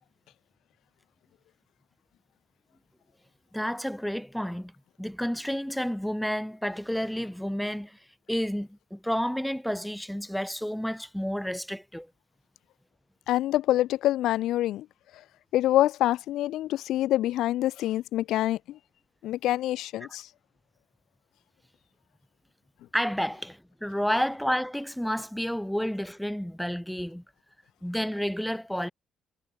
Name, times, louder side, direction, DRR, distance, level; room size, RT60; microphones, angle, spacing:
voice 1, 3.5-4.7 5.0-8.0 8.3-12.1 22.9-27.2 27.8-28.9, equal, ahead, 7.8 m, -30 dB
voice 2, 13.3-14.8 15.5-18.8 19.2-20.2, left 14 dB, 80° left, 4.9 m, -26 dB
cardioid pair, 85°, 0 cm